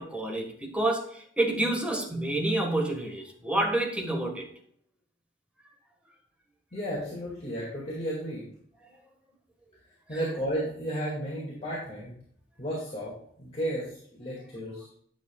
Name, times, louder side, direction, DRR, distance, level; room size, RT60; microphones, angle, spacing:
voice 1, 0.0-4.5, right 1 dB, 5° right, 0 dB, 1.5 m, -28 dB
voice 2, 6.7-8.4 10.1-12.1 12.6-14.9, equal, 35° left, -6 dB, 2.1 m, -33 dB
10.0 x 7.2 x 2.3 m, 0.64 s
head